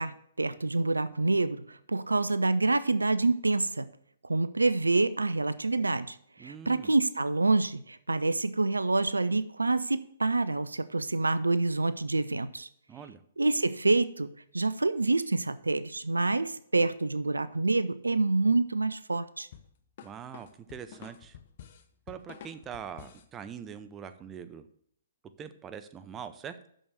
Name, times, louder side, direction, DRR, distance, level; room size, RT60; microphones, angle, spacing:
voice 1, 0.0-3.9 4.2-12.7 13.4-14.3 14.5-19.5, right 3 dB, 80° right, 15 dB, 0.4 m, -27 dB
voice 2, 6.4-6.9 12.9-13.2 20.0-21.4 22.1-24.7 25.4-26.6, right 8 dB, 20° right, 10 dB, 0.6 m, -43 dB
sound 1, 19.5-23.3, left 8 dB, 45° left, 0.7 m, -49 dB
6.2 x 6.2 x 6.5 m, 0.66 s
figure-of-eight pair, 125°, 0 cm